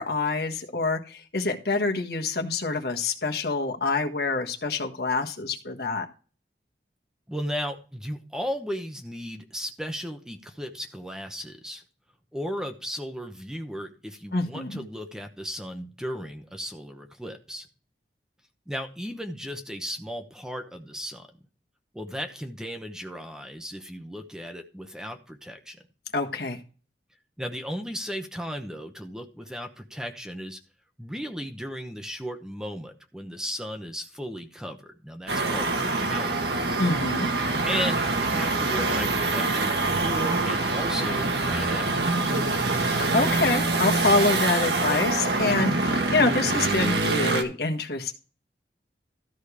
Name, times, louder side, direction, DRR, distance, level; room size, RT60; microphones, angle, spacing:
voice 1, 0.0-6.1 14.3-14.8 26.1-26.6 36.8-37.3 42.8-48.1, left 3 dB, 60° left, 3 dB, 1.5 m, -26 dB
voice 2, 7.3-11.8 12.3-17.7 18.7-21.3 21.9-25.8 27.4-30.6 31.0-36.5 37.6-42.3 45.6-45.9, equal, 5° right, 6 dB, 0.9 m, -35 dB
sound 1, 35.3-47.4, right 3 dB, 70° right, 1.6 m, -25 dB
13.5 x 5.1 x 4.9 m, 0.36 s
head